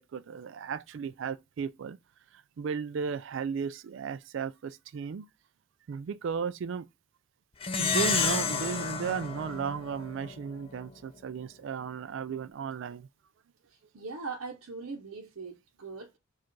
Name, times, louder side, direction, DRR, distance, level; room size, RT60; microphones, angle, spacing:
voice 1, 0.1-2.0 2.6-5.3 5.9-6.9 7.8-13.1, right 6 dB, 60° right, 0.3 m, -35 dB
Plucked string instrument, 7.6-10.4, left 5 dB, 25° left, 0.4 m, -30 dB
voice 2, 13.7-16.2, right 4 dB, 80° right, 0.8 m, -41 dB
4.8 x 2.4 x 4.5 m
head